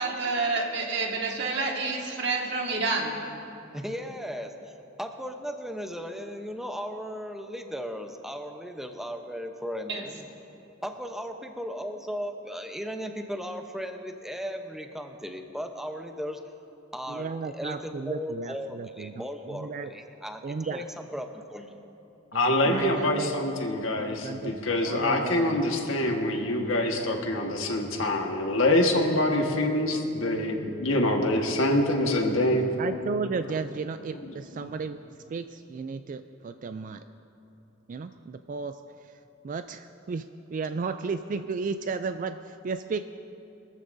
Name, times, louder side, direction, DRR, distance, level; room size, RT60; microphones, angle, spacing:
voice 1, 0.0-3.2 9.9-10.0, right 3 dB, 60° right, 0 dB, 1.8 m, -28 dB
voice 2, 3.7-4.5 5.0-10.3 10.8-16.4 16.9-21.8 22.6-22.7, equal, ahead, 4 dB, 0.8 m, -36 dB
voice 3, 17.1-19.9 20.4-20.8 22.3-23.3 24.0-24.5 24.8-25.6 26.0-26.2 32.8-35.0 35.3-37.0 37.9-38.8 39.4-40.2 40.5-43.0, right 4 dB, 40° right, 9 dB, 0.3 m, -34 dB
voice 4, 22.3-32.7 34.1-34.3, left 1 dB, 70° left, 1 dB, 1.5 m, -25 dB
23.0 x 14.0 x 2.6 m, 2.8 s
head